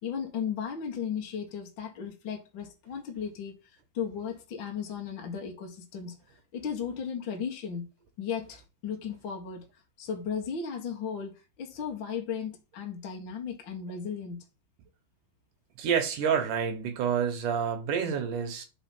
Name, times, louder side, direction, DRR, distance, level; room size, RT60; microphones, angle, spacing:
voice 1, 0.0-6.2 6.5-7.9 8.2-9.6 10.0-14.4, left 7 dB, 75° left, 1.1 m, -35 dB
voice 2, 15.8-18.6, right 7 dB, 65° right, 2.3 m, -28 dB
5.1 x 5.0 x 5.9 m
omnidirectional pair, 4.8 m